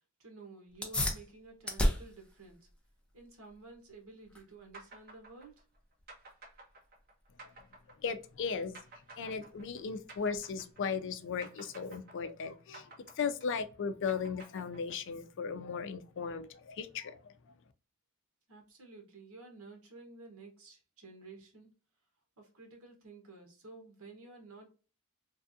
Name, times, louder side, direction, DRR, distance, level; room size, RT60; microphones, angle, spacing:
voice 1, 0.2-2.7 3.1-5.6 18.5-21.7 22.4-24.7, right 3 dB, 75° right, 1.2 m, -52 dB
sound 1, 0.7-10.7, left 1 dB, 5° left, 0.6 m, -39 dB
sound 2, 4.7-11.1 11.4-15.3, right 2 dB, 45° right, 1.1 m, -53 dB
voice 2, 8.0-8.8 9.2-17.3, left 6 dB, 60° left, 0.4 m, -37 dB
3.3 x 2.4 x 2.6 m
head